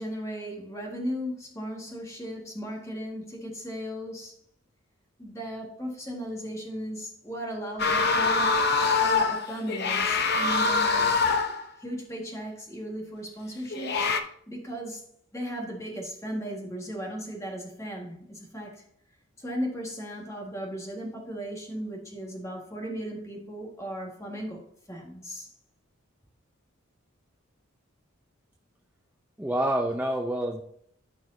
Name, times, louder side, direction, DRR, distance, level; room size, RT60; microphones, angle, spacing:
voice 1, 0.0-4.4 5.2-8.5 9.0-11.2 11.8-15.0 15.3-18.8 19.4-24.6 24.9-25.5, equal, 15° left, 0 dB, 1.6 m, -36 dB
sound 1, 7.8-11.7 13.7-14.2, left 4 dB, 50° left, 0.7 m, -24 dB
voice 2, 29.4-30.6, right 1 dB, 10° right, 1 dB, 0.5 m, -27 dB
13.5 x 4.7 x 2.7 m, 0.65 s
head